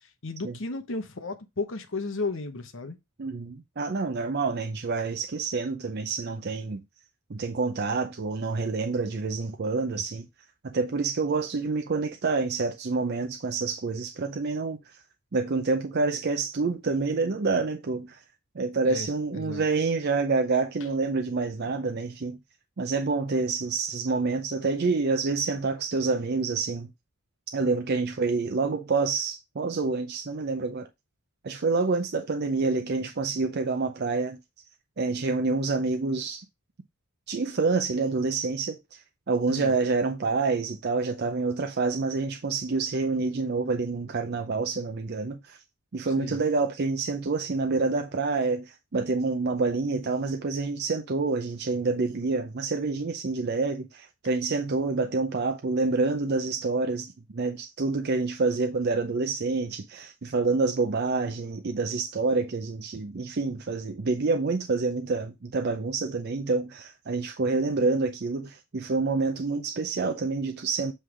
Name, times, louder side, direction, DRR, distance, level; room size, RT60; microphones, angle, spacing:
voice 1, 0.0-3.0 18.8-19.6 21.6-21.7 28.4-28.5 39.5-39.7 46.2-46.4, left 3 dB, 60° left, 0.9 m, -34 dB
voice 2, 3.2-6.8 7.3-10.3 10.6-15.0 15.3-18.2 18.5-22.4 22.8-26.9 27.5-30.9 31.4-34.4 35.0-36.4 37.3-45.6 45.9-70.9, right 3 dB, 45° right, 0.5 m, -27 dB
7.7 x 3.3 x 4.9 m
head